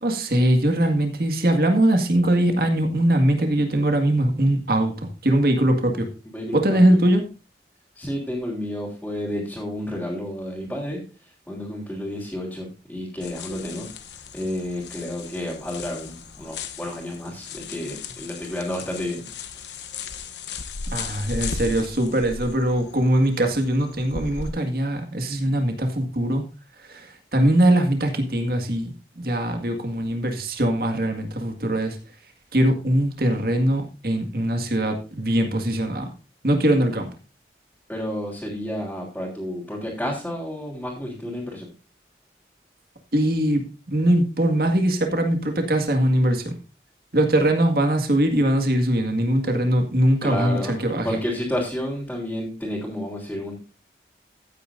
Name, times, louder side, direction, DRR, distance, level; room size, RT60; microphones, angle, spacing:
voice 1, 0.0-6.1 6.5-7.2 20.9-26.4 26.8-32.0 32.5-36.1 36.4-37.1 43.1-46.6 47.1-51.2, right 1 dB, 55° right, 5 dB, 1.9 m, -21 dB
voice 2, 6.2-7.0 7.9-11.0 11.5-13.9 14.3-19.2 37.9-41.7 50.2-50.8 51.0-53.5, left 1 dB, 5° left, -7 dB, 3.3 m, -30 dB
sound 1, 13.2-24.5, left 5 dB, 80° left, 0.9 m, -36 dB
14.5 x 9.2 x 2.6 m, 0.32 s
head